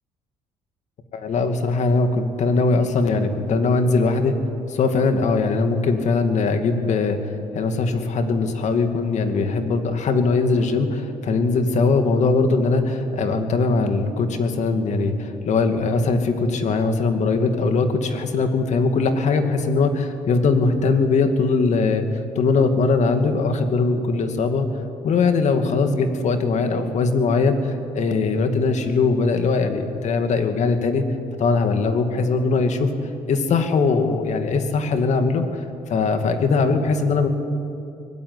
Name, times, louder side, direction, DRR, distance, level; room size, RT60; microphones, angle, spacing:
voice 1, 1.1-4.4 4.7-22.0 22.4-24.7 25.0-31.0 31.4-32.9 33.3-37.3, left 4 dB, 55° left, 7 dB, 2.4 m, -21 dB
24.0 x 19.0 x 9.8 m, 2.7 s
cardioid pair, 130°, 14 cm